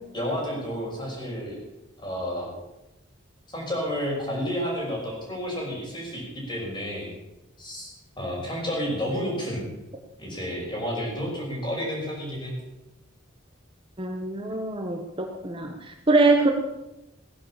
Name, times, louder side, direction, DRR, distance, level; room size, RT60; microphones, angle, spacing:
voice 1, 0.1-1.6 2.0-2.5 3.5-7.1 7.6-7.9 8.2-9.7 10.2-12.5, equal, 25° left, -2 dB, 5.8 m, -31 dB
voice 2, 14.0-16.5, right 3 dB, 25° right, 4 dB, 1.1 m, -23 dB
16.5 x 10.5 x 7.3 m, 0.96 s
head